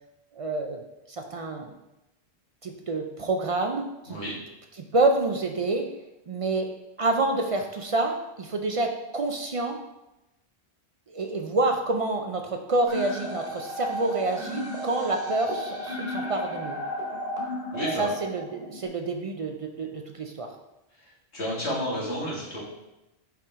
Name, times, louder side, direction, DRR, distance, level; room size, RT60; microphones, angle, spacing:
voice 1, 0.3-0.8 1.1-1.7 2.6-4.2 4.8-5.9 6.3-6.7 7.0-9.8 11.1-16.8 17.8-20.5, right 2 dB, 55° right, 4 dB, 0.3 m, -28 dB
sound 1, 12.9-18.9, left 1 dB, 40° right, 1.5 m, -34 dB
voice 2, 17.7-18.1 21.3-22.6, equal, 85° left, -7 dB, 2.4 m, -30 dB
5.7 x 5.0 x 3.5 m, 0.94 s
omnidirectional pair, 1.1 m